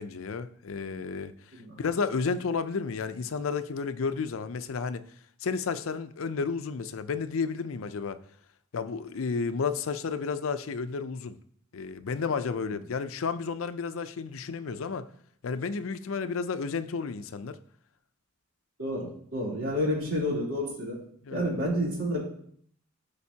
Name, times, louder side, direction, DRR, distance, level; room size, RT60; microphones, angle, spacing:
voice 1, 0.0-1.3 1.8-5.0 5.4-8.2 8.7-11.4 11.7-15.1 15.4-17.6 21.2-21.5, left 5 dB, 80° left, 0.5 m, -32 dB
voice 2, 18.8-21.0 21.3-22.2, equal, 85° right, 3.1 m, -29 dB
13.0 x 5.1 x 2.8 m
head